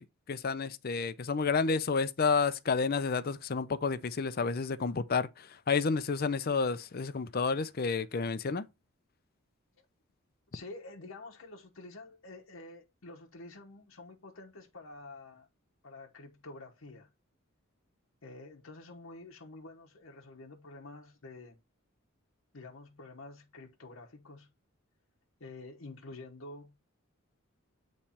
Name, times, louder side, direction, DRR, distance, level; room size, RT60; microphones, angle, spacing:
voice 1, 0.0-8.7, left 4 dB, 45° left, 0.5 m, -30 dB
voice 2, 10.5-15.5 15.8-17.1 18.2-21.6 22.5-24.5 25.4-26.7, left 2 dB, 70° left, 1.0 m, -48 dB
8.7 x 3.2 x 4.3 m
head